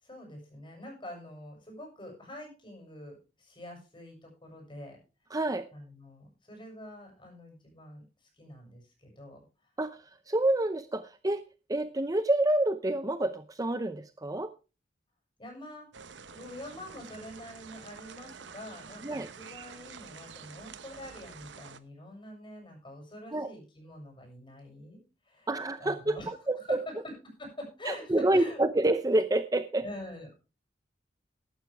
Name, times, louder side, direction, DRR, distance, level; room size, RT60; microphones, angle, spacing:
voice 1, 0.0-5.0 5.7-8.0 8.4-9.4 15.4-15.9 16.3-25.5 25.8-28.6 29.8-30.4, left 1 dB, 30° left, 1 dB, 6.9 m, -45 dB
voice 2, 5.3-5.7 9.8-11.4 11.7-14.5 19.0-19.3 23.3-23.5 25.5-26.8 27.9-29.8, right 1 dB, 20° right, 11 dB, 0.6 m, -28 dB
sound 1, 15.9-21.8, right 6 dB, 85° right, 0.9 m, -48 dB
14.0 x 11.5 x 3.4 m, 0.32 s
head